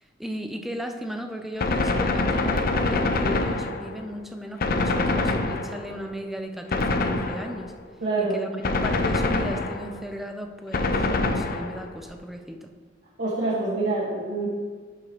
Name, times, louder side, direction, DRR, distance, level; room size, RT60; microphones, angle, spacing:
voice 1, 0.2-7.7 8.2-12.7, equal, ahead, 5 dB, 0.4 m, -36 dB
Gunshot gunfire, 1.6-4.1 4.6-6.0 6.7-7.7 8.6-10.0 10.7-12.0, left 2 dB, 50° left, 0.5 m, -25 dB
voice 2, 8.0-8.4 13.2-14.5, right 2 dB, 70° right, -7 dB, 1.4 m, -26 dB
11.0 x 4.9 x 2.9 m, 1.5 s
head